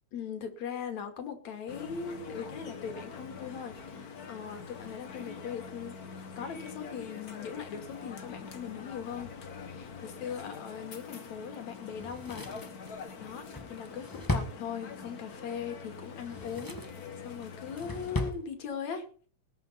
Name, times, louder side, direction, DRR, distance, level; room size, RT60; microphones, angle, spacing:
voice 1, 0.1-6.0 6.4-12.5 13.2-19.1, left 7 dB, 70° left, 6 dB, 3.5 m, -40 dB
sound 1, 1.7-18.3, left 5 dB, 40° left, 1.4 m, -45 dB
Drawer open or close, 11.9-15.2 16.1-17.0 17.4-18.4 18.7-18.8, left 1 dB, 15° left, 0.9 m, -36 dB
20.0 x 7.2 x 5.8 m, 0.43 s
omnidirectional pair, 3.3 m